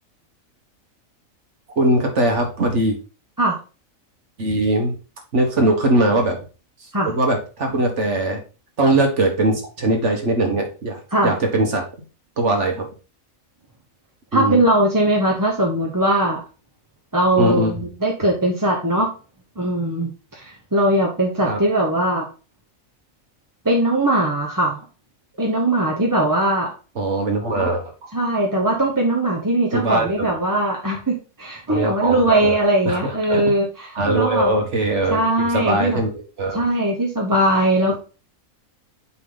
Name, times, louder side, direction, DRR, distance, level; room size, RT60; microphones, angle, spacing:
voice 1, 1.8-3.0 4.4-4.9 5.3-6.4 7.1-8.4 8.8-11.8 12.4-12.9 14.3-14.6 17.4-17.8 21.5-21.6 27.0-27.9 29.7-30.3 31.7-32.6 32.8-33.4 33.9-35.2 35.5-36.6, right 1 dB, 60° right, 3 dB, 1.7 m, -21 dB
voice 2, 14.3-16.4 17.1-19.1 19.6-22.3 23.6-24.8 25.4-26.7 28.1-34.5 35.1-36.0 36.5-37.9, right 1 dB, 15° right, -1 dB, 0.8 m, -20 dB
8.1 x 3.7 x 3.9 m, 0.34 s
omnidirectional pair, 1.4 m